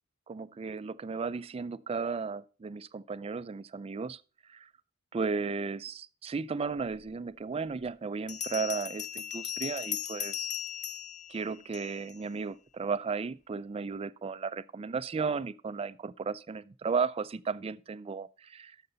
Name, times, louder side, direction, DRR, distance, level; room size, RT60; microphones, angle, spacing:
voice 1, 0.3-4.2 4.5-4.7 5.1-10.5 11.3-18.8, right 5 dB, 30° right, 0.3 m, -35 dB
Bell, 7.1-7.2 8.3-12.2, left 9 dB, 35° left, 0.6 m, -37 dB
12.0 x 6.6 x 3.9 m
head